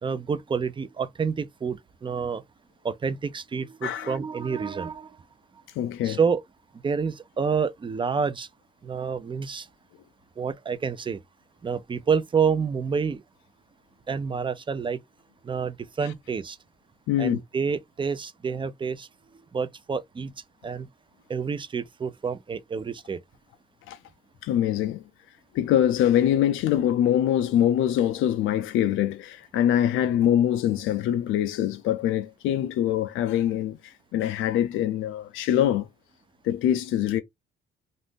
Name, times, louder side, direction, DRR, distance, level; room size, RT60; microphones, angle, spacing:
voice 1, 0.0-2.4 2.8-5.1 6.0-6.4 6.8-8.5 8.8-9.7 10.4-11.2 11.6-13.2 14.1-15.0 15.4-16.6 17.2-19.1 19.5-20.3 20.6-20.9 21.3-23.2, right 6 dB, 25° right, 0.4 m, -28 dB
voice 2, 3.8-4.2 5.8-6.2 16.0-16.1 17.1-17.4 23.9-24.0 24.4-25.0 25.5-35.9 36.4-37.2, left 11 dB, 85° left, 0.4 m, -24 dB
2.5 x 2.5 x 3.6 m
cardioid pair, 90°, 20 cm